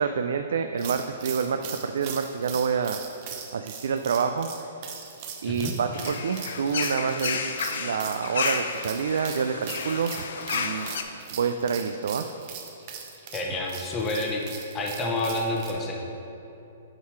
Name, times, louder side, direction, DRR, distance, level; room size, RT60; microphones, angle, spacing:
voice 1, 0.0-3.0 3.5-4.5 4.8-5.1 5.4-10.1 10.5-10.9 11.3-12.3, right 6 dB, 75° right, 7 dB, 0.3 m, -27 dB
sound 1, 0.8-15.7, right 7 dB, 35° right, 0.8 m, -40 dB
voice 2, 5.4-5.8 13.3-16.0, left 2 dB, 15° left, 0 dB, 0.7 m, -29 dB
sound 2, 5.9-11.0, left 5 dB, 65° left, 0.6 m, -32 dB
8.8 x 4.7 x 4.6 m, 2.9 s
hypercardioid pair, 160°, 0 cm